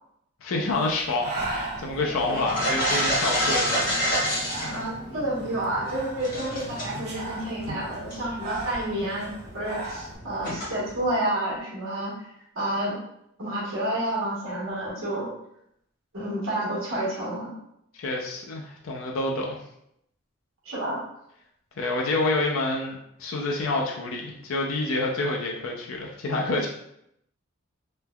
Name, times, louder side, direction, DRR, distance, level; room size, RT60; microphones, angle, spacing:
voice 1, 0.4-4.0 18.0-19.6 21.8-26.7, left 2 dB, 75° left, -1 dB, 0.5 m, -28 dB
Breathing, 0.7-10.2, right 2 dB, 35° right, 0.5 m, -38 dB
sound 1, 1.4-11.1, equal, 45° left, 1.1 m, -30 dB
voice 2, 4.7-12.1 12.5-13.0 13.4-15.3 16.1-17.5 20.6-21.0, right 1 dB, 85° right, -5 dB, 1.1 m, -29 dB
3.2 x 2.1 x 2.2 m, 0.76 s
head